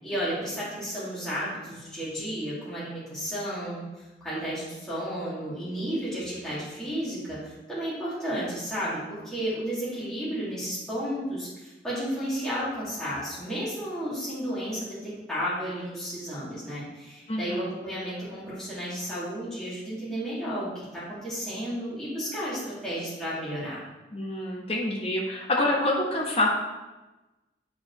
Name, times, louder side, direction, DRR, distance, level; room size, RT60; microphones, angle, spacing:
voice 1, 0.0-23.8, equal, 5° left, -11 dB, 2.4 m, -33 dB
voice 2, 17.3-17.7 24.1-26.5, left 1 dB, 35° left, -1 dB, 1.2 m, -27 dB
8.1 x 4.7 x 3.2 m, 1.1 s
head